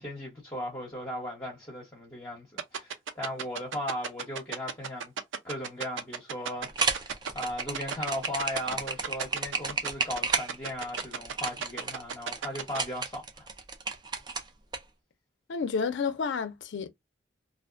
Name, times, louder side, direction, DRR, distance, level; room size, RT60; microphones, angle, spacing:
voice 1, 0.0-5.1 5.4-7.1 7.3-13.5, left 1 dB, 15° left, 0.9 m, -37 dB
sound 1, 2.6-12.8, right 6 dB, 85° right, 0.5 m, -33 dB
sound 2, 6.7-14.8, right 4 dB, 25° right, 0.4 m, -32 dB
voice 2, 15.5-16.9, left 5 dB, 75° left, 0.4 m, -30 dB
2.5 x 2.1 x 2.4 m
head